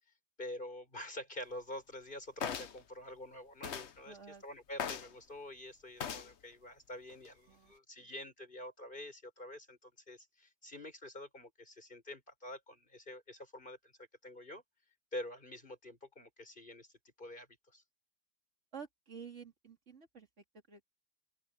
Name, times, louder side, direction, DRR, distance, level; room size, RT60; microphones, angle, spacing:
voice 1, 0.4-14.6 15.1-16.9 17.2-17.8, left 1 dB, 45° left, 6.7 m, -47 dB
sound 1, 2.4-2.8 3.6-3.9 4.8-5.1 6.0-6.3 7.1-7.3, left 8 dB, 70° left, 1.2 m, -39 dB
voice 2, 4.1-4.4 7.5-8.1 18.7-20.9, right 6 dB, 90° right, 3.1 m, -51 dB
open air
omnidirectional pair, 1.2 m